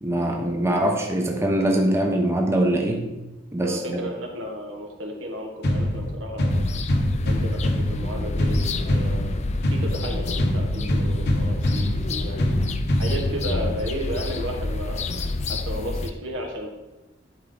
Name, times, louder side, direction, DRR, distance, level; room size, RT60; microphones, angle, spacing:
voice 1, 0.0-3.1 3.5-4.0, right 1 dB, 15° right, 1 dB, 0.8 m, -23 dB
voice 2, 3.6-6.6 7.2-9.3 9.7-12.6 13.0-15.1 15.5-16.7, equal, 80° right, 1 dB, 1.6 m, -33 dB
sound 1, 5.6-13.6, left 1 dB, 55° left, 1.0 m, -25 dB
sound 2, 6.5-16.1, left 3 dB, 35° left, 0.4 m, -29 dB
11.5 x 4.6 x 3.9 m, 1.0 s
head